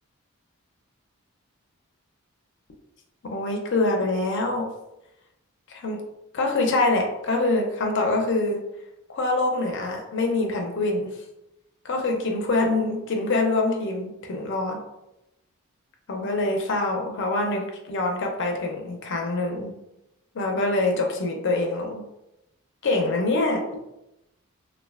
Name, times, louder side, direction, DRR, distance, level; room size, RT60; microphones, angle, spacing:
voice 1, 3.2-4.7 5.7-6.0 6.3-8.6 9.1-11.2 11.8-14.8 16.1-19.7 20.3-22.0 22.8-23.6, left 2 dB, 55° left, 2 dB, 0.5 m, -25 dB
3.1 x 2.3 x 2.3 m, 0.89 s
head